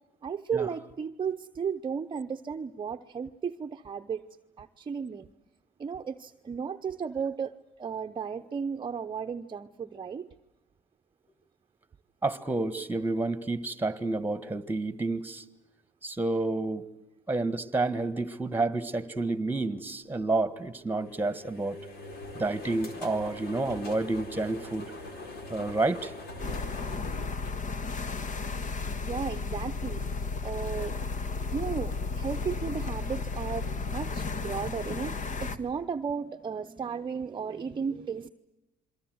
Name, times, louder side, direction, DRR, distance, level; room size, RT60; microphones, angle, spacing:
voice 1, 0.2-4.3 4.6-5.3 5.8-7.5 7.8-10.3 29.0-30.0 30.4-30.9 31.5-38.3, right 6 dB, 30° right, 7 dB, 0.8 m, -34 dB
voice 2, 12.2-15.4 16.0-16.8 17.3-21.8 22.3-24.9 25.5-26.1, right 2 dB, 10° right, 15 dB, 1.6 m, -29 dB
sound 1, 20.9-28.2, left 2 dB, 75° left, 4.4 m, -43 dB
sound 2, 26.4-35.6, left 4 dB, 45° left, 1.7 m, -33 dB
28.5 x 23.0 x 7.9 m, 0.97 s
cardioid pair, 110°, 17 cm